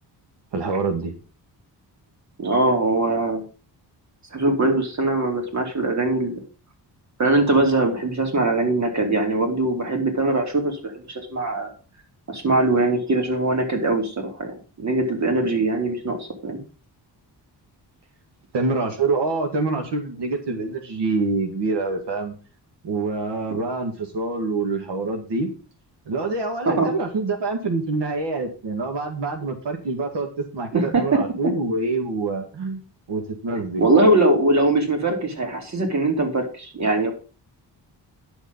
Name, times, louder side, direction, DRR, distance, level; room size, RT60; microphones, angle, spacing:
voice 1, 0.5-1.1 18.5-22.4 22.8-25.5 26.1-32.8 33.1-33.9, right 3 dB, 80° right, 4 dB, 2.0 m, -26 dB
voice 2, 2.4-3.4 4.3-6.4 7.2-11.7 12.3-14.5 14.8-16.6 23.5-23.6 26.6-26.9 30.7-31.2 33.8-37.1, right 2 dB, 40° right, 3 dB, 3.1 m, -21 dB
11.0 x 6.6 x 5.4 m, 0.35 s
wide cardioid pair, 140°, 42 cm